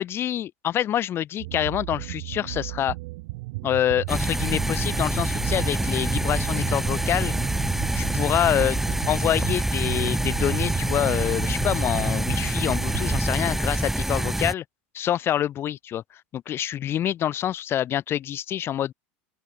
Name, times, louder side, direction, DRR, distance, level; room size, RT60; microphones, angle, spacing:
voice 1, 0.0-2.9 3.6-7.3 7.9-14.6 14.9-16.0 16.3-18.9, left 11 dB, 35° left, 0.5 m, -26 dB
sound 1, 1.4-13.2, right 23 dB, 70° right, 0.9 m, -35 dB
sound 2, 4.1-14.5, right 1 dB, 5° right, 1.4 m, -26 dB
open air
hypercardioid pair, 100°, 7 cm